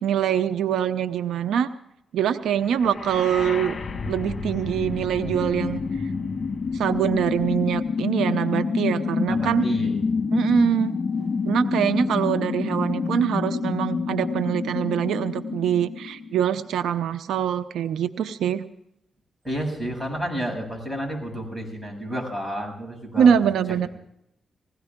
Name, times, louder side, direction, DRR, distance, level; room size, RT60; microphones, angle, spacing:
voice 1, 0.0-1.7 2.1-3.7 4.1-5.8 6.7-9.7 10.3-11.0 11.5-18.6 23.2-23.9, right 8 dB, 90° right, 11 dB, 0.7 m, -23 dB
sound 1, 2.7-16.7, left 5 dB, 45° left, 1.7 m, -28 dB
voice 2, 9.3-10.2 19.4-23.3, equal, 5° right, 0 dB, 7.6 m, -31 dB
20.5 x 16.5 x 3.7 m, 0.79 s
cardioid pair, 80°, 0 cm